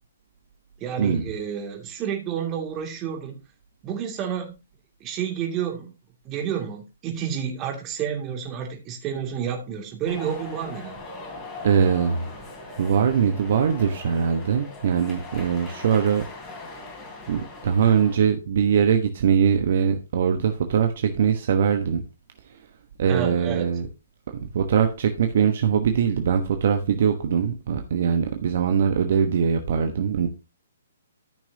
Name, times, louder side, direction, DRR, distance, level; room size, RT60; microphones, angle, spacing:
voice 1, 0.8-3.4 3.8-4.5 5.0-5.9 6.2-11.0 23.1-23.7, right 8 dB, 25° right, 3 dB, 2.5 m, -30 dB
sound 1, 10.1-18.2, left 2 dB, 20° left, 3.4 m, -40 dB
voice 2, 11.6-12.3 12.8-16.2 17.3-22.0 23.0-23.9 24.4-30.3, right 7 dB, 55° right, 6 dB, 1.2 m, -22 dB
14.0 x 6.1 x 2.8 m, 0.28 s
figure-of-eight pair, 125°, 0 cm